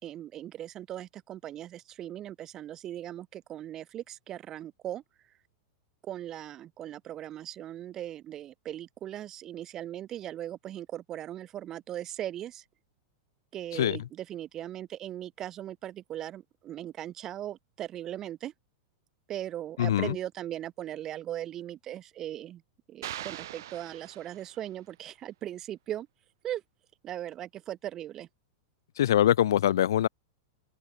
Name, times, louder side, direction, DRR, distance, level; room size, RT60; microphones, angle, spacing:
voice 1, 0.0-5.0 6.0-12.6 13.5-18.5 19.3-22.6 22.9-26.1 26.4-26.6 27.0-28.3, right 12 dB, 20° right, 6.7 m, -39 dB
voice 2, 19.8-20.2 29.0-30.1, left 11 dB, 85° left, 0.6 m, -23 dB
sound 1, 23.0-24.8, right 13 dB, 70° right, 5.7 m, -41 dB
open air
supercardioid pair, 170°, 2 cm